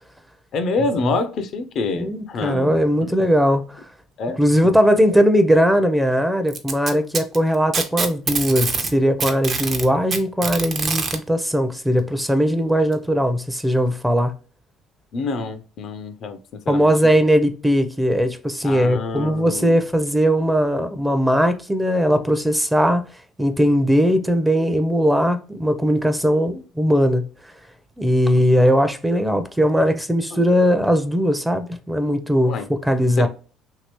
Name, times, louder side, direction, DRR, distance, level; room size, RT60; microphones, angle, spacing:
voice 1, 0.5-3.1 4.2-4.7 15.1-16.9 18.6-19.8 30.3-30.4 32.4-32.7 33.2-33.3, left 3 dB, 55° left, 0.4 m, -27 dB
voice 2, 2.0-3.8 4.4-14.3 16.7-23.0 23.4-27.2 28.0-33.3, equal, 5° right, 0.5 m, -19 dB
Packing tape duct tape, 6.5-8.9 9.2-11.2 12.3-12.4 12.9-13.0 13.9-14.0, right 4 dB, 45° right, 0.6 m, -24 dB
2.8 x 2.7 x 3.0 m
hypercardioid pair, 60°, 0 cm